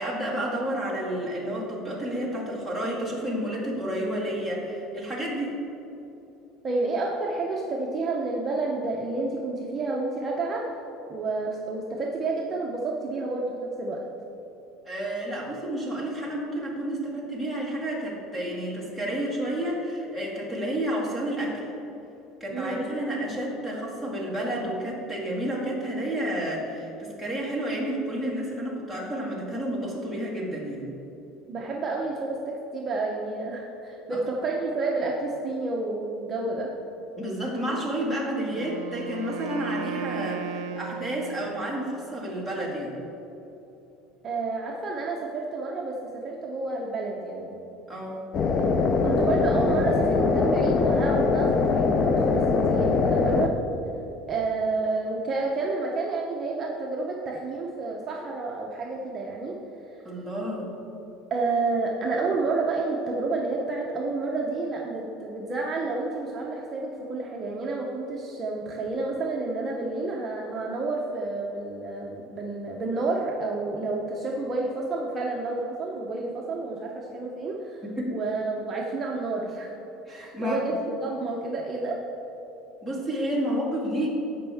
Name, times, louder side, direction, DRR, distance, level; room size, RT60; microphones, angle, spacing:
voice 1, 0.0-5.6 14.8-21.7 22.4-30.9 34.1-34.2 37.2-43.0 47.9-48.3 60.0-60.7 77.8-78.2 80.1-80.6 82.8-84.1, right 1 dB, 10° left, -4 dB, 2.1 m, -30 dB
voice 2, 6.6-10.7 11.1-14.1 22.5-22.8 31.5-36.7 44.2-47.6 48.6-53.5 54.3-59.6 59.9-60.0 61.3-77.8 78.1-79.7 80.1-80.7 81.0-82.0, right 3 dB, 25° right, -2 dB, 0.8 m, -30 dB
Wind instrument woodwind instrument, 38.5-41.8, right 7 dB, 80° right, 0.6 m, -36 dB
sound 1, 48.3-53.5, left 4 dB, 35° left, 0.5 m, -22 dB
15.5 x 5.4 x 3.5 m, 3.0 s
cardioid pair, 155°, 0 cm